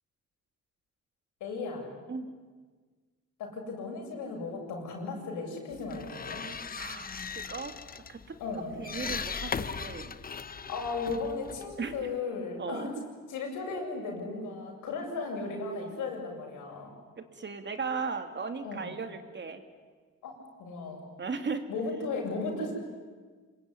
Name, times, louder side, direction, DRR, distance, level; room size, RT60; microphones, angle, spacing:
voice 1, 1.4-1.8 3.4-6.5 8.4-8.8 10.7-12.9 13.3-16.9 18.6-18.9 20.2-20.3 20.6-21.0 21.7-22.7, left 3 dB, 85° left, 1 dB, 7.7 m, -35 dB
sound 1, 5.7-12.2, left 6 dB, 30° left, 0.9 m, -39 dB
voice 2, 6.8-7.8 8.1-8.4 8.8-10.2 11.8-12.1 12.6-12.9 17.2-19.6 21.2-21.7, right 5 dB, 35° right, 8 dB, 2.6 m, -37 dB
26.5 x 22.0 x 9.9 m, 1.5 s
cardioid pair, 90°, 30 cm